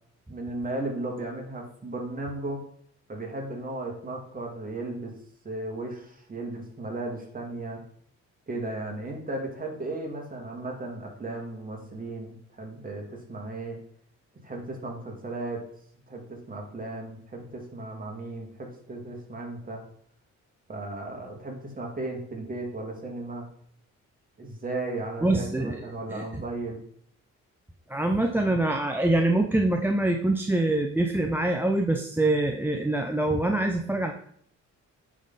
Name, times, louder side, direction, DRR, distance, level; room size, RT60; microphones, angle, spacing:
voice 1, 0.3-2.6 3.1-5.1 5.4-7.8 8.5-13.8 14.4-15.7 16.1-19.8 20.7-23.5 24.4-26.8, right 2 dB, 30° right, 0 dB, 2.2 m, -35 dB
voice 2, 25.2-26.4 27.9-34.1, right 2 dB, 5° right, 4 dB, 0.5 m, -25 dB
9.2 x 3.8 x 4.0 m, 0.63 s
cardioid pair, 90°, 30 cm